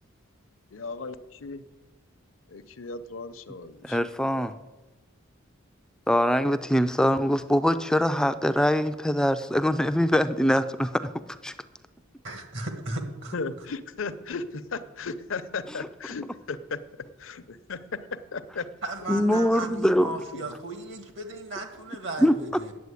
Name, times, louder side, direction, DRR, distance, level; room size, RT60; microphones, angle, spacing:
voice 1, 0.7-1.6 2.5-4.0 13.3-16.8 17.2-18.7 20.3-20.5 22.0-22.1, left 4 dB, 75° left, 12 dB, 0.7 m, -36 dB
voice 2, 3.8-4.6 6.1-11.0 11.3-11.5 19.1-20.1 22.2-22.4, equal, 5° left, 11 dB, 0.3 m, -23 dB
voice 3, 12.2-13.3 18.8-22.7, right 2 dB, 60° right, 5 dB, 1.4 m, -36 dB
9.4 x 7.7 x 8.3 m, 1.1 s
head